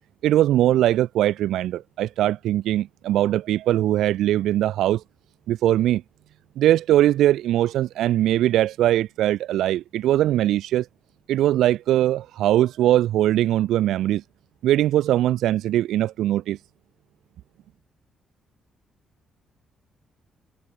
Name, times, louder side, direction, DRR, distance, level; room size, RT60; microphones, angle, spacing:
voice 1, 0.2-5.0 5.5-6.0 6.6-10.9 11.3-14.2 14.6-16.6, right 13 dB, 80° right, 1.6 m, -21 dB
supercardioid pair, 55°, 0 cm